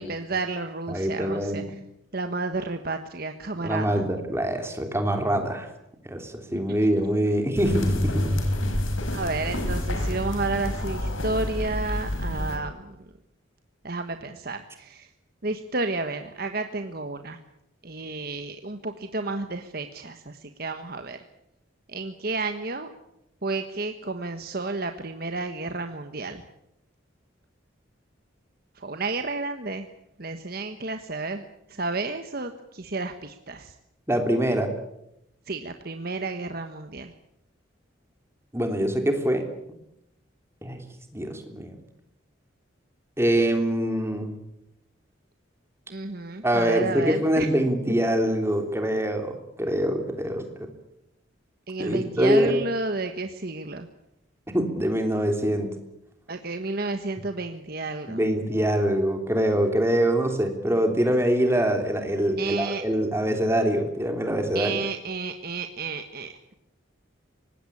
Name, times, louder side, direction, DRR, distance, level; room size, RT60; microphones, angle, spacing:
voice 1, 0.0-1.6 2.1-4.0 9.1-13.0 13.8-15.1 15.4-17.4 17.8-21.2 21.9-22.9 23.4-26.4 28.8-29.9 30.2-31.4 31.7-33.7 35.5-37.1 45.9-47.5 51.7-53.9 56.3-58.2 62.4-62.8 64.5-66.5, right 3 dB, 50° right, 7 dB, 1.3 m, -31 dB
voice 2, 0.9-1.6 3.6-5.7 6.0-8.3 34.1-34.7 38.5-39.5 40.6-40.8 41.1-41.7 43.2-44.3 46.4-50.7 51.8-52.5 54.5-55.7 58.1-64.8, right 1 dB, 15° right, 5 dB, 3.3 m, -24 dB
sound 1, 7.6-12.6, left 1 dB, 90° left, 4.9 m, -27 dB
24.5 x 20.0 x 8.7 m, 0.84 s
head